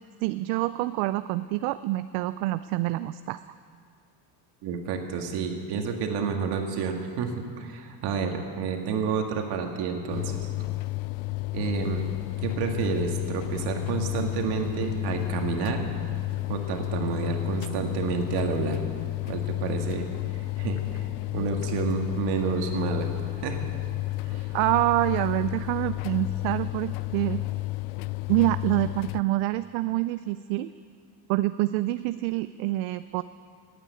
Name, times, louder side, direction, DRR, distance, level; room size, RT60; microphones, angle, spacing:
voice 1, 0.2-3.4 24.5-27.4 28.3-30.7 31.3-33.2, right 17 dB, 75° right, 13 dB, 0.5 m, -26 dB
voice 2, 4.6-10.5 11.5-12.0 12.4-15.9 16.5-18.8 19.3-20.1 20.3-21.1 21.3-23.6 24.2-24.5, right 5 dB, 55° right, 3 dB, 1.9 m, -30 dB
sound 1, 10.1-29.2, left 20 dB, 85° left, 0.6 m, -31 dB
15.5 x 9.0 x 9.2 m, 2.2 s
cardioid pair, 170°, 47 cm